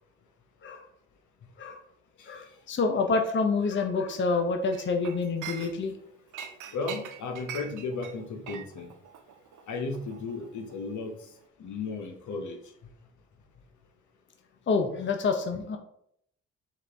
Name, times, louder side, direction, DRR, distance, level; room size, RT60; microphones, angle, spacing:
voice 1, 2.3-5.9 14.7-15.8, left 4 dB, 35° left, 5 dB, 0.7 m, -27 dB
Chink clink, 4.7-6.0 6.3-10.9 11.2-11.5, right 9 dB, 70° right, 0.6 m, -43 dB
voice 2, 6.7-8.9 9.7-11.3 11.6-12.6 14.9-15.0, left 3 dB, 65° left, 5 dB, 0.9 m, -35 dB
5.9 x 2.5 x 3.4 m, 0.72 s
supercardioid pair, 50°, 32 cm